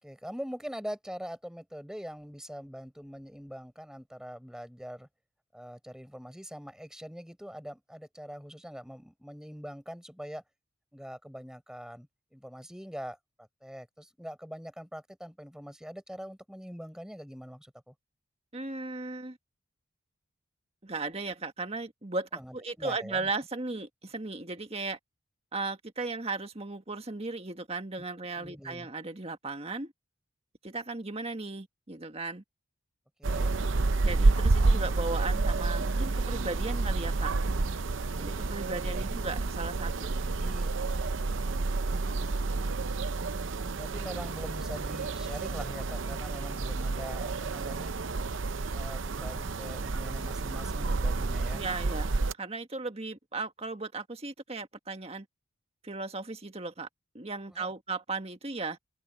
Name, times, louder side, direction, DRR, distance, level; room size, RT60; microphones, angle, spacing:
voice 1, 0.0-5.1 5.5-10.4 10.9-17.9 22.4-23.3 28.3-28.9 33.2-33.5 38.8-39.1 40.4-40.8 43.8-47.9 48.7-51.6 57.5-57.7, equal, 5° right, 6.1 m, -43 dB
voice 2, 18.5-19.4 20.8-25.0 25.5-29.9 30.6-32.4 34.0-37.3 38.2-40.4 51.5-55.3 55.8-56.9 57.1-58.8, right 3 dB, 30° right, 1.7 m, -36 dB
sound 1, 33.2-52.3, right 3 dB, 65° right, 0.7 m, -29 dB
open air
head